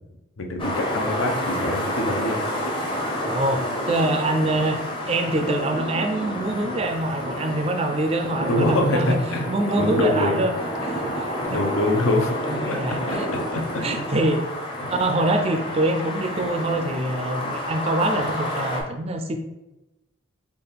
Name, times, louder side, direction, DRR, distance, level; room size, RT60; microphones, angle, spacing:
voice 1, 0.4-2.4 8.4-9.5 9.8-10.4 11.4-13.8 14.8-14.9, left 1 dB, 90° left, 3 dB, 0.7 m, -25 dB
sound 1, 0.6-18.8, equal, 25° left, 0.6 m, -29 dB
voice 2, 3.2-4.8 5.1-9.2 9.5-10.5 10.8-11.6 12.5-13.3 13.6-14.4 14.9-19.4, right 1 dB, 30° right, 6 dB, 0.3 m, -25 dB
3.4 x 2.4 x 3.9 m, 0.99 s
head